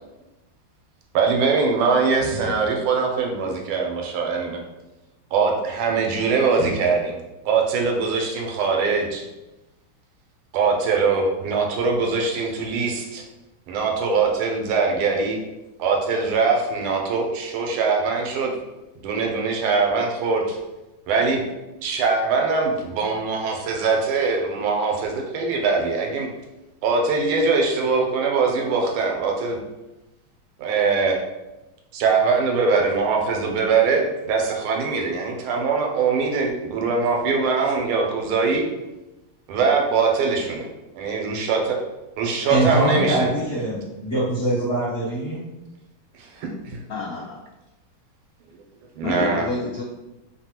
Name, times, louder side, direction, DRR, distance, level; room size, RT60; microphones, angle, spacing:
voice 1, 1.1-4.6 5.3-7.2 7.4-9.2 10.5-13.2 13.7-15.4 15.8-18.5 19.0-20.6 21.1-21.4 21.8-26.3 26.8-29.6 30.6-31.2 31.9-38.7 39.5-40.7 40.9-41.8 42.2-43.3 46.1-46.8 48.9-49.5, right 4 dB, 85° right, 1 dB, 1.5 m, -22 dB
voice 2, 2.2-2.5 6.6-6.7 42.5-45.4, right 1 dB, 40° left, -9 dB, 1.0 m, -23 dB
voice 3, 46.9-47.4 49.0-49.8, left 4 dB, 90° left, -6 dB, 0.8 m, -28 dB
3.3 x 2.2 x 2.8 m, 1.0 s
omnidirectional pair, 2.3 m